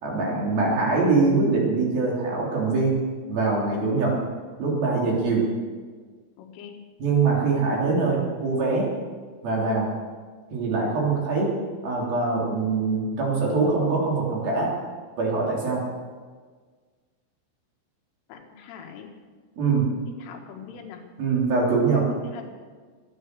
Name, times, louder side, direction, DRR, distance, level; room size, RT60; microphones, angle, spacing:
voice 1, 0.0-2.9 3.3-4.1 4.6-5.4 7.0-8.9 9.4-9.9 10.5-11.5 11.8-14.7 15.2-15.8 19.6-19.9 21.2-22.0, right 4 dB, 50° right, -3 dB, 4.9 m, -23 dB
voice 2, 6.4-6.8 18.3-19.2 20.2-21.1 21.9-22.5, left 7 dB, 85° left, 2 dB, 4.2 m, -41 dB
22.0 x 9.5 x 6.8 m, 1.5 s
omnidirectional pair, 5.6 m